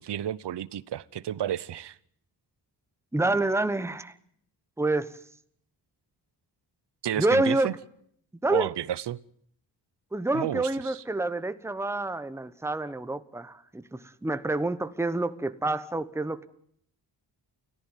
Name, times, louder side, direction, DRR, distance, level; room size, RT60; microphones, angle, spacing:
voice 1, 0.0-2.0 7.0-7.7 8.5-9.2 10.3-11.0, right 11 dB, 70° right, 21 dB, 0.9 m, -31 dB
voice 2, 3.1-4.1 4.8-5.1 7.2-7.7 8.4-8.7 10.1-16.5, right 2 dB, 5° right, 12 dB, 1.1 m, -27 dB
29.5 x 14.5 x 9.2 m, 0.67 s
wide cardioid pair, 115°, 43 cm